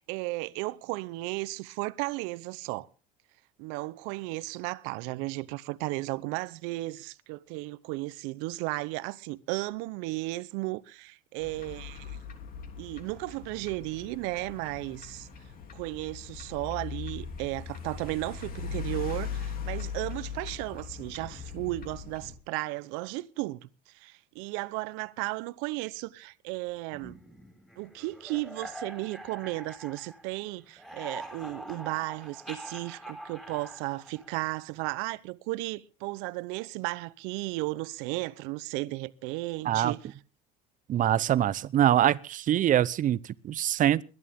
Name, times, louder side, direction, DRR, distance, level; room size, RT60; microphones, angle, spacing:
voice 1, 0.0-2.9 3.6-12.2 12.8-15.3 15.7-23.7 23.9-27.2 27.8-40.0, right 21 dB, 70° right, 0.8 m, -34 dB
sound 1, 11.4-22.4, left 6 dB, 45° left, 2.9 m, -40 dB
sound 2, 26.9-30.4 30.7-34.7, right 1 dB, ahead, 4.7 m, -45 dB
voice 2, 40.9-44.0, right 11 dB, 40° right, 0.8 m, -24 dB
21.5 x 11.0 x 3.6 m
supercardioid pair, 95°, 20 cm